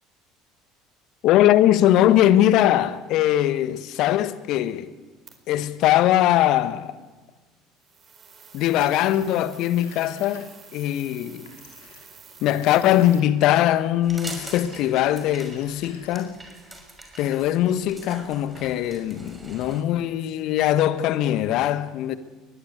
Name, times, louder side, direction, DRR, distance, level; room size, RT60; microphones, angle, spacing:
voice 1, 1.2-4.9 5.5-7.0 8.5-11.5 12.4-16.4 17.2-22.2, left 12 dB, 55° left, 1.5 m, -21 dB
sound 1, 5.3-5.4 7.8-13.2, right 6 dB, 35° right, 4.6 m, -49 dB
Telephone, 8.7-9.4 9.7-10.8 11.4-13.5 14.2-15.0 15.4-16.5, left 5 dB, 75° left, 5.2 m, -51 dB
sound 2, 14.0-19.8, right 2 dB, 15° right, 6.3 m, -42 dB
22.5 x 21.0 x 8.2 m
figure-of-eight pair, 65°, 0 cm